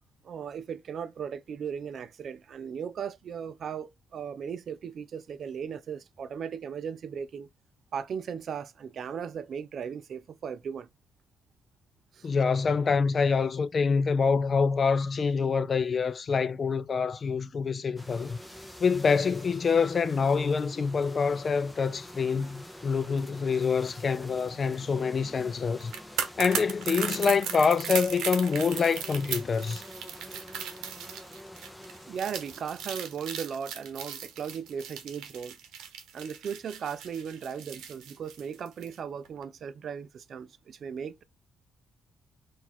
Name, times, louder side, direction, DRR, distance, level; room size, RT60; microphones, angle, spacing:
voice 1, 0.2-7.5 7.9-10.9 12.1-12.3 32.1-35.6 36.1-41.2, right 7 dB, 60° right, 0.4 m, -37 dB
voice 2, 12.2-18.4 18.8-25.9 26.4-29.8, left 5 dB, 40° left, 0.3 m, -26 dB
sound 1, 18.0-33.5, left 1 dB, 5° left, 0.7 m, -47 dB
sound 2, 25.8-39.0 39.2-39.4, right 8 dB, 90° right, 0.8 m, -37 dB
4.0 x 2.5 x 4.3 m
cardioid pair, 90°, 0 cm